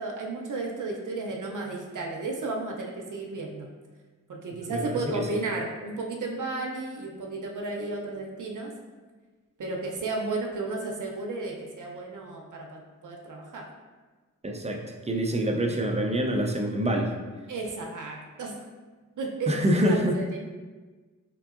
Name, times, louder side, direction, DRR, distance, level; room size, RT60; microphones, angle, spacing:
voice 1, 0.0-3.7 4.3-8.7 9.6-13.7 17.5-18.7 19.2-20.4, right 3 dB, 70° right, 0 dB, 0.6 m, -33 dB
voice 2, 4.7-5.2 14.4-17.1 19.5-20.2, right 1 dB, 20° right, 2 dB, 0.4 m, -26 dB
3.7 x 3.4 x 2.4 m, 1.3 s
wide cardioid pair, 80°, 32 cm